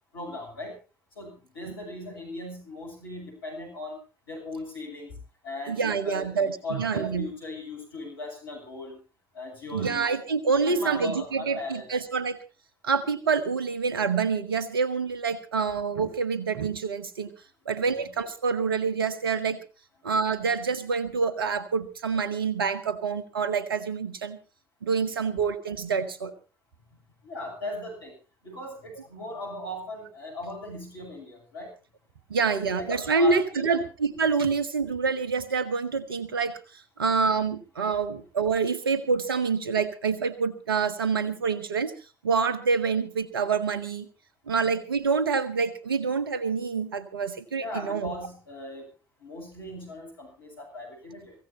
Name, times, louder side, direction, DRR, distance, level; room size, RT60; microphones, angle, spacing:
voice 1, 0.1-0.7 1.2-4.0 4.3-5.1 5.4-9.0 9.3-10.1 10.5-11.9 17.9-18.1 25.2-25.3 27.2-28.1 28.4-31.7 32.3-33.8 47.6-48.8 49.2-51.3, left 2 dB, 80° left, 0 dB, 7.9 m, -38 dB
voice 2, 5.7-7.3 9.7-12.4 12.8-17.3 17.6-19.6 20.0-24.4 24.8-26.3 32.3-41.9 42.2-44.1 44.5-48.1, right 5 dB, 80° right, 14 dB, 1.4 m, -27 dB
24.0 x 16.0 x 2.9 m, 0.34 s
figure-of-eight pair, 55°, 12 cm